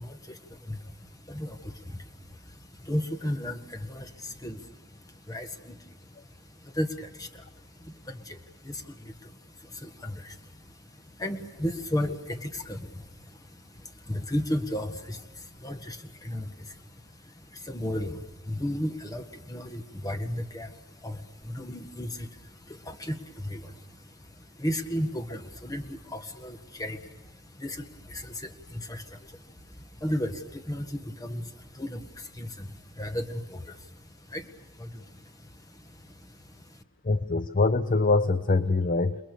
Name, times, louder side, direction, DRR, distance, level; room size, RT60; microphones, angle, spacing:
voice 1, 0.0-36.8, left 1 dB, 15° left, 6 dB, 1.6 m, -36 dB
voice 2, 37.0-39.2, left 3 dB, 40° left, 11 dB, 0.7 m, -24 dB
28.5 x 21.0 x 7.0 m, 1.2 s
head